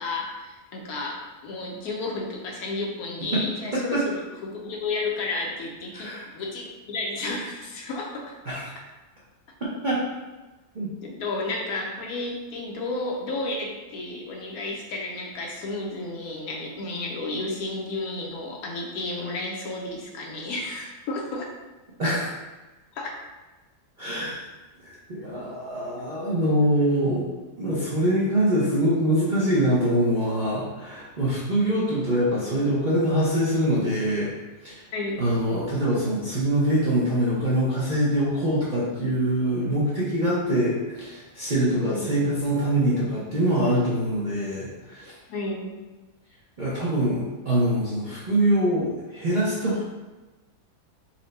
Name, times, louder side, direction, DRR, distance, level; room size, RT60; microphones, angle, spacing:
voice 1, 0.0-8.4 11.0-21.5 23.0-23.1 34.9-35.2 41.6-42.2 45.3-45.7, left 2 dB, 70° left, 0 dB, 1.1 m, -32 dB
voice 2, 3.7-4.0 5.9-6.3 8.5-8.6 9.8-10.0 10.7-10.9 22.0-22.3 24.0-24.4 24.8-27.3 27.6-34.3 34.6-34.9 35.2-45.2 46.6-49.8, right 1 dB, 45° right, -8 dB, 0.6 m, -24 dB
4.3 x 2.1 x 3.9 m, 1.2 s
omnidirectional pair, 1.7 m